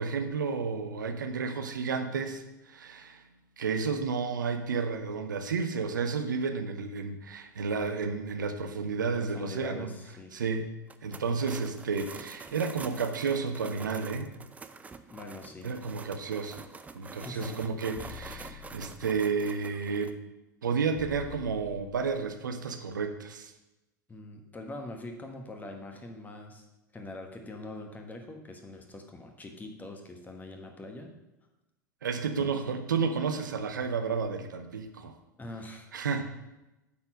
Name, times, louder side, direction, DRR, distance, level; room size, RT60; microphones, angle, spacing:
voice 1, 0.0-3.2 3.6-9.9 10.3-10.7 11.0-14.3 15.6-16.6 16.9-20.1 20.6-23.5 32.0-35.2 35.9-36.2, right 5 dB, 80° right, 7 dB, 0.8 m, -31 dB
voice 2, 9.1-10.3 15.0-15.7 17.1-17.6 24.1-26.7 26.9-31.1 32.4-32.5 35.4-35.9, left 2 dB, 15° left, 3 dB, 1.4 m, -43 dB
sound 1, 10.8-20.1, right 4 dB, 15° right, 0.5 m, -46 dB
sound 2, 18.0-19.4 21.0-22.4, left 9 dB, 40° left, 0.8 m, -47 dB
8.4 x 4.4 x 5.9 m, 0.99 s
figure-of-eight pair, 90°, 10 cm